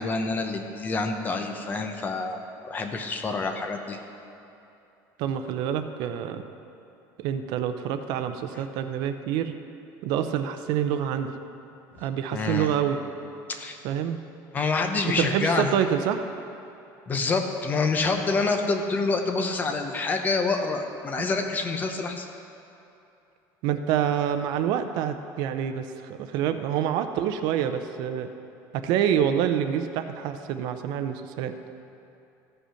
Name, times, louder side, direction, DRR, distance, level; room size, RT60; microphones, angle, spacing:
voice 1, 0.0-2.4 2.6-4.0 12.3-12.7 13.5-13.8 14.5-15.7 17.1-22.2, left 3 dB, 20° left, 5 dB, 0.7 m, -27 dB
voice 2, 5.2-6.4 7.2-9.5 10.0-11.3 12.0-13.0 13.8-14.2 15.2-16.2 23.6-28.3 28.8-31.5, right 9 dB, 60° right, 9 dB, 0.6 m, -27 dB
14.5 x 5.5 x 5.7 m, 2.8 s
cardioid pair, 170°, 8 cm